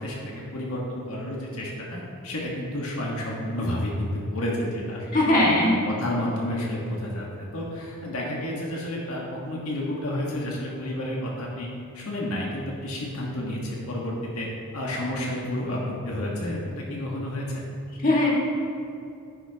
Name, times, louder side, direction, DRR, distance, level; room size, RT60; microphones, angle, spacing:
voice 1, 0.0-5.4 5.8-11.7 11.9-14.5 14.7-15.8 16.0-17.6, left 1 dB, 80° left, -3 dB, 1.5 m, -30 dB
voice 2, 5.1-5.8 18.0-18.3, left 1 dB, 40° left, -4 dB, 1.9 m, -19 dB
10.5 x 9.9 x 2.9 m, 2.6 s
head